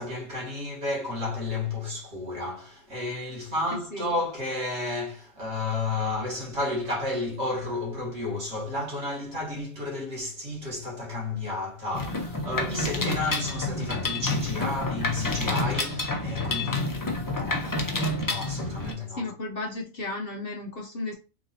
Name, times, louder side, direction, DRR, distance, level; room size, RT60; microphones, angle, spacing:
voice 1, 0.0-17.8 18.2-19.3, left 2 dB, 55° right, 2.0 m, -32 dB
Mechanisms, 11.9-18.9, left 2 dB, 25° left, 0.4 m, -29 dB
voice 2, 19.1-21.1, left 2 dB, 55° left, 0.8 m, -34 dB
3.9 x 2.7 x 4.1 m
omnidirectional pair, 1.4 m